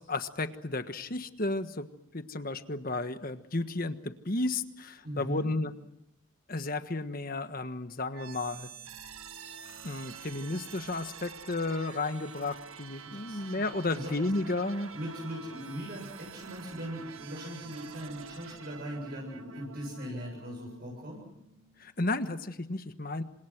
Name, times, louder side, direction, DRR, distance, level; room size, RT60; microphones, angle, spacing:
voice 1, 0.0-1.9 2.1-5.7 6.5-8.7 9.8-14.9 21.8-23.2, left 2 dB, 45° left, 9 dB, 1.4 m, -33 dB
voice 2, 5.0-5.5 12.9-14.1 14.9-21.2, equal, 50° right, -1 dB, 7.7 m, -40 dB
sound 1, 8.1-22.0, right 6 dB, 85° right, 1.7 m, -48 dB
28.5 x 26.0 x 6.1 m, 0.82 s
head